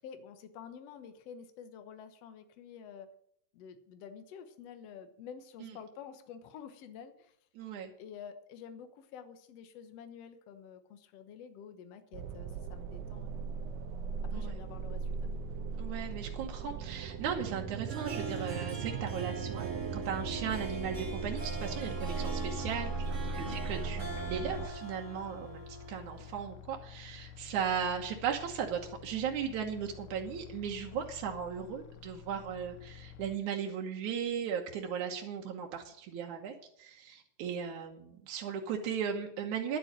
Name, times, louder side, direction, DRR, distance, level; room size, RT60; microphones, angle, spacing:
voice 1, 0.0-3.1 3.5-7.4 8.0-13.6 14.2-15.3 23.4-23.6 30.9-31.1, left 7 dB, 65° left, 10 dB, 2.1 m, -49 dB
voice 2, 7.6-7.9 14.3-14.6 15.8-39.8, right 7 dB, 90° right, 2 dB, 2.6 m, -37 dB
sound 1, 12.1-24.7, right 5 dB, 70° right, 2.0 m, -38 dB
Harp, 17.7-26.4, right 2 dB, 25° right, 2.9 m, -44 dB
sound 2, 20.2-33.4, left 8 dB, 85° left, 2.1 m, -50 dB
11.0 x 7.8 x 9.0 m, 0.67 s
omnidirectional pair, 3.3 m